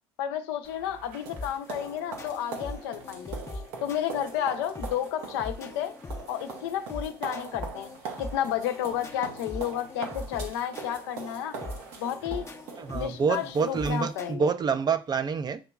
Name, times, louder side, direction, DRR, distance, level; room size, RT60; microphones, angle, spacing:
voice 1, 0.2-3.4 3.8-6.0 6.3-7.9 8.2-11.6 12.0-12.4 12.9-14.5, left 10 dB, 80° left, 0.5 m, -31 dB
sound 1, 0.6-14.3, right 4 dB, 80° right, 0.9 m, -42 dB
sound 2, 1.3-14.3, left 2 dB, 25° left, 0.6 m, -42 dB
voice 2, 12.8-15.6, right 5 dB, 35° right, 0.5 m, -27 dB
7.2 x 2.9 x 2.3 m
hypercardioid pair, 60°, 12 cm